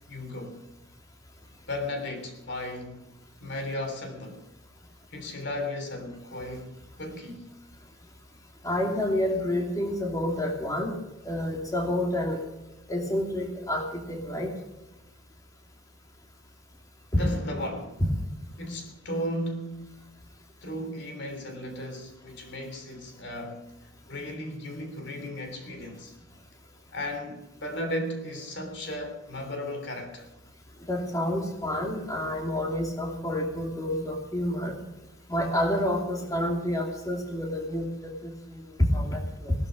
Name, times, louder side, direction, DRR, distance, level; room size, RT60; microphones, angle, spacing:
voice 1, 0.1-0.6 1.7-3.1 3.4-4.4 5.1-6.7 7.0-7.5 17.1-18.1 18.6-20.0 20.6-23.7 24.1-26.1 26.9-30.3, left 1 dB, 60° left, 3.2 m, -35 dB
voice 2, 8.6-10.9 11.2-12.4 12.9-14.5 17.1-17.2 30.9-34.7 35.3-39.5, left 1 dB, 20° left, 2.7 m, -28 dB
19.0 x 12.5 x 5.1 m
head